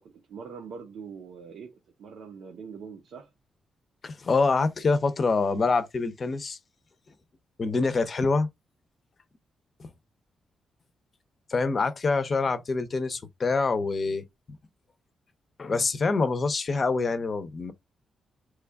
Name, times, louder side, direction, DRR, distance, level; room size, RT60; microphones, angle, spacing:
voice 1, 0.0-3.3, right 6 dB, 75° right, 0.7 m, -43 dB
voice 2, 4.0-6.6 7.6-8.5 11.5-14.3 15.6-17.7, left 4 dB, 40° left, 0.6 m, -25 dB
3.2 x 2.3 x 3.3 m
cardioid pair, 100°, 0 cm